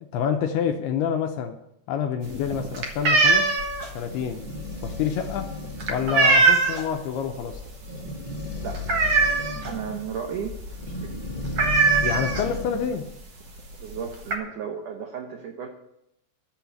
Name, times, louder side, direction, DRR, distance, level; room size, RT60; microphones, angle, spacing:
voice 1, 0.1-1.6 1.9-3.6 3.9-4.4 4.8-5.6 5.9-7.6 12.0-13.1, left 8 dB, 80° left, 6 dB, 2.4 m, -27 dB
sound 1, 2.2-7.0 7.3-7.7 7.9-8.0 8.4-9.8 10.1-10.3 10.5-10.7 11.0-11.1 11.5-12.8 13.6-13.7 13.9-14.3, right 4 dB, 65° right, 1.4 m, -21 dB
sound 2, 3.4-13.0, left 2 dB, 60° left, 0.5 m, -35 dB
voice 2, 9.6-10.6 11.0-11.1 13.8-15.7, right 7 dB, 85° right, 4 dB, 1.8 m, -34 dB
13.0 x 6.9 x 7.1 m, 0.82 s
omnidirectional pair, 5.2 m